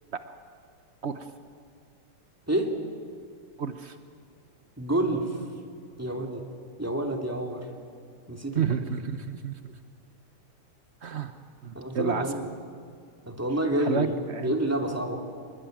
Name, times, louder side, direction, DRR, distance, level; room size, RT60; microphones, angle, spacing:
voice 1, 3.6-4.0 6.1-6.2 8.5-9.8 11.0-11.3 11.6-12.2 13.8-14.6, right 7 dB, 65° right, 8 dB, 0.6 m, -31 dB
voice 2, 4.8-5.4 6.0-6.5 6.8-7.6 8.3-8.7 11.7-12.5 13.3-14.1 14.4-15.2, right 1 dB, 5° right, 1 dB, 2.5 m, -28 dB
26.5 x 20.5 x 9.2 m, 2.3 s
omnidirectional pair, 2.4 m